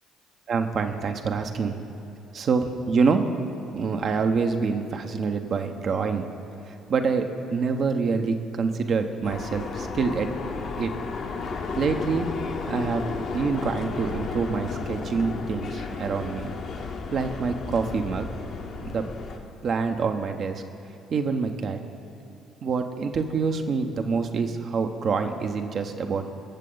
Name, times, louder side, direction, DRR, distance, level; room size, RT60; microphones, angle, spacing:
voice 1, 0.5-1.8 2.3-3.2 3.7-6.2 6.9-10.3 10.8-10.9 11.8-12.3 12.7-13.0 13.3-16.5 17.1-18.3 18.8-19.1 19.6-20.6 21.1-21.8 22.6-26.2, right 5 dB, 50° right, 6 dB, 1.0 m, -26 dB
sound 1, 9.2-19.4, left 4 dB, 60° left, 1.3 m, -33 dB
22.5 x 7.6 x 4.0 m, 3.0 s
hypercardioid pair, 50°, 0 cm